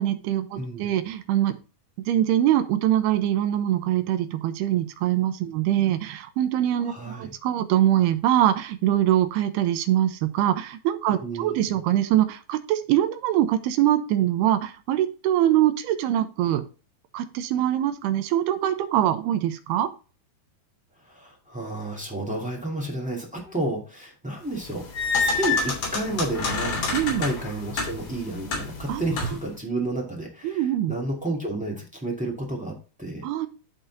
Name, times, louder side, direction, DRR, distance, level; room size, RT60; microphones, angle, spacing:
voice 1, 0.0-1.5 2.0-16.6 17.1-19.9 26.9-27.2 28.9-29.0 30.4-30.9 33.2-33.5, right 12 dB, 85° right, 10 dB, 2.8 m, -23 dB
voice 2, 6.8-7.3 11.1-11.8 21.0-24.9 25.2-33.2, right 2 dB, 5° right, -2 dB, 1.1 m, -31 dB
sound 1, 24.5-29.5, left 4 dB, 75° left, 5.0 m, -28 dB
12.0 x 4.0 x 4.0 m, 0.35 s
omnidirectional pair, 4.5 m